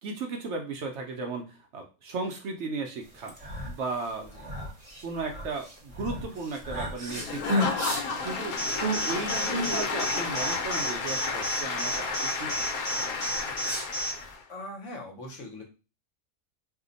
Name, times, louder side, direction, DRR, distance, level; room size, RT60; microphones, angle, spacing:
voice 1, 0.0-3.3 3.7-4.3 5.0-8.0 8.2-8.6 9.0-12.1 12.4-12.5, right 4 dB, 65° right, 3 dB, 0.8 m, -35 dB
sound 1, 3.1-14.3, equal, 30° right, 0.7 m, -35 dB
Applause / Crowd, 7.1-14.4, left 5 dB, 90° left, 1.1 m, -32 dB
Alarm, 8.6-14.1, equal, 25° left, 0.6 m, -31 dB
voice 2, 14.5-15.6, left 1 dB, 60° left, 2 dB, 1.1 m, -41 dB
2.7 x 2.1 x 3.8 m, 0.31 s
omnidirectional pair, 1.5 m